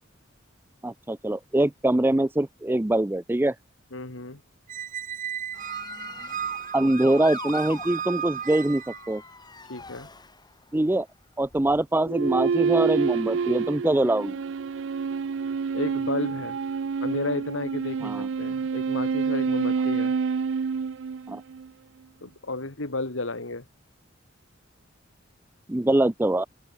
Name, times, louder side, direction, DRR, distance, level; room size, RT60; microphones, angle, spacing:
voice 1, 0.8-3.6 6.7-9.2 10.7-11.1 11.4-14.4 18.0-18.3 21.3-21.4 25.7-26.5, right 1 dB, 10° right, 0.5 m, -23 dB
voice 2, 3.9-4.4 9.7-10.1 15.7-16.6 17.0-20.1 22.2-23.6, left 2 dB, 85° left, 2.7 m, -32 dB
Squeak, 4.7-9.2, right 8 dB, 40° right, 0.8 m, -35 dB
Motor vehicle (road) / Siren, 5.5-10.8 11.4-11.8, left 3 dB, 20° left, 6.9 m, -42 dB
sound 1, 12.0-21.7, right 5 dB, 70° right, 0.4 m, -27 dB
open air
head